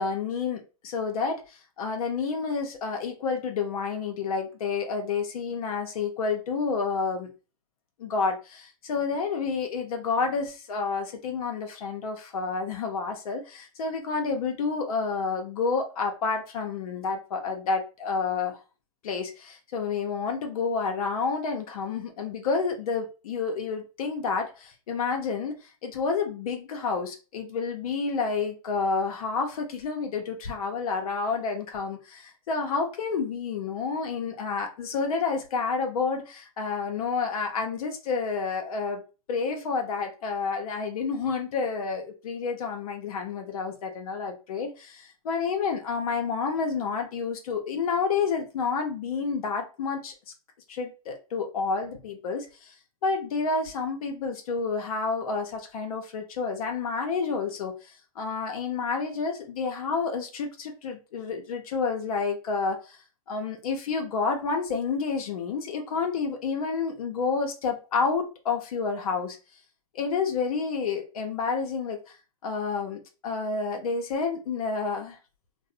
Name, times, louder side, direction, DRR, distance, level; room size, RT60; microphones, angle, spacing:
voice 1, 0.0-7.3 8.0-18.6 19.0-39.0 39.3-50.3 50.7-52.7 53.0-63.0 63.3-69.4 69.9-72.2 72.4-75.2, left 5 dB, 75° left, 0.6 m, -29 dB
2.5 x 2.0 x 2.4 m
hypercardioid pair, 130°, 19 cm